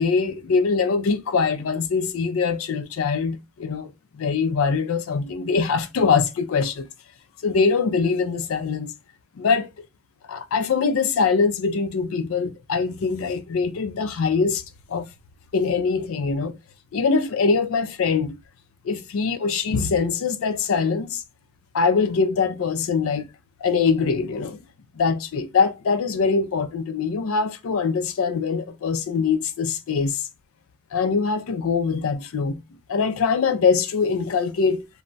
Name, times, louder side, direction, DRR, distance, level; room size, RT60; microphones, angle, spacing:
voice 1, 0.0-6.9 7.4-8.9 9.4-9.7 10.3-14.6 14.9-15.1 15.5-16.6 16.9-18.4 18.8-21.2 21.7-23.3 23.6-24.6 25.0-30.3 30.9-32.6 32.9-34.9, left 5 dB, 80° left, 0.4 m, -23 dB
2.2 x 2.0 x 3.8 m
head